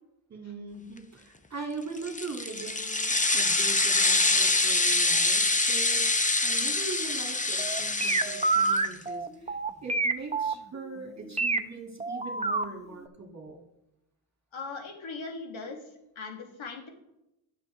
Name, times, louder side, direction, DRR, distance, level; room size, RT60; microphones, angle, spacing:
voice 1, 0.3-6.1 6.4-13.6, right 4 dB, 35° right, 1 dB, 2.1 m, -41 dB
sound 1, 2.0-8.9, left 2 dB, 15° left, 0.9 m, -25 dB
sound 2, 7.6-11.6 12.0-12.6 13.1-13.2, right 3 dB, 15° right, 0.7 m, -27 dB
voice 2, 14.5-16.9, left 4 dB, 70° left, 2 dB, 2.1 m, -39 dB
9.5 x 7.0 x 3.7 m, 0.90 s
supercardioid pair, 45°, 48 cm